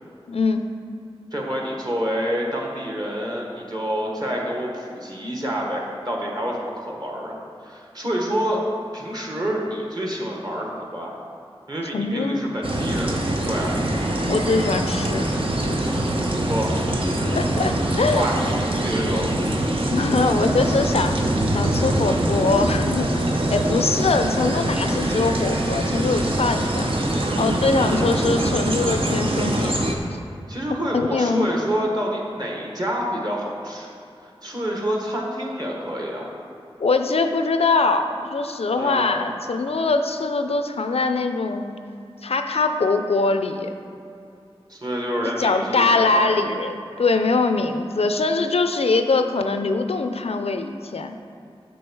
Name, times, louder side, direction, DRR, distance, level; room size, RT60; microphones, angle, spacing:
voice 1, 0.3-0.6 11.9-12.4 14.3-15.3 16.9-18.3 19.9-21.2 21.5-26.9 27.4-29.7 30.9-31.5 36.8-41.8 42.2-43.7 45.2-51.1, left 3 dB, 80° left, 7 dB, 0.5 m, -22 dB
voice 2, 1.3-7.3 7.6-8.6 8.9-11.2 11.7-13.8 16.5-16.7 17.9-19.3 27.8-28.2 30.5-33.9 34.4-36.4 38.8-39.3 44.7-46.4, equal, 40° right, -1 dB, 1.5 m, -28 dB
sound 1, 12.6-29.9, right 1 dB, 60° right, 0.8 m, -23 dB
8.3 x 6.2 x 4.7 m, 2.6 s
wide cardioid pair, 65°, 10 cm